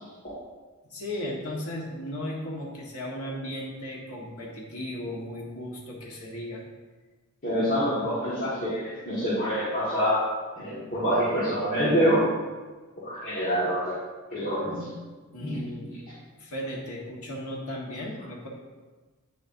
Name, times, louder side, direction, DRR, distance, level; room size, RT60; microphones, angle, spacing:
voice 1, 0.9-6.6 7.7-8.1 15.3-15.9 16.4-18.5, left 1 dB, 80° left, -3 dB, 1.6 m, -36 dB
voice 2, 7.4-10.2 10.6-12.3 13.0-13.9 14.3-14.9 15.4-15.6, equal, 40° left, -11 dB, 1.9 m, -26 dB
9.0 x 7.2 x 2.7 m, 1.3 s
head